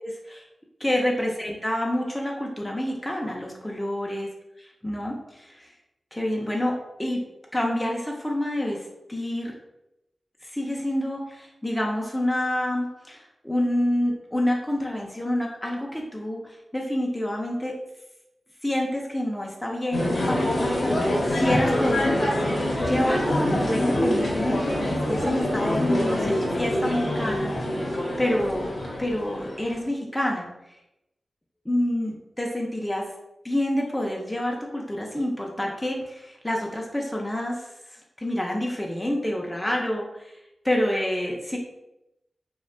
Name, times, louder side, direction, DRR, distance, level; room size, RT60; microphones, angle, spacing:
voice 1, 0.0-0.4 0.8-4.3 4.6-5.7 6.1-6.7 7.0-7.2 7.5-8.8 9.1-9.5 10.4-17.7 18.6-22.5 22.8-27.5 28.2-28.7 29.0-30.5 31.7-33.0 33.4-37.7 38.2-40.4 40.6-41.6, left 1 dB, 10° left, -1 dB, 0.4 m, -28 dB
sound 1, 19.9-29.7, left 1 dB, 65° left, 0.6 m, -25 dB
2.5 x 2.1 x 2.4 m, 0.89 s
cardioid pair, 55°, 0 cm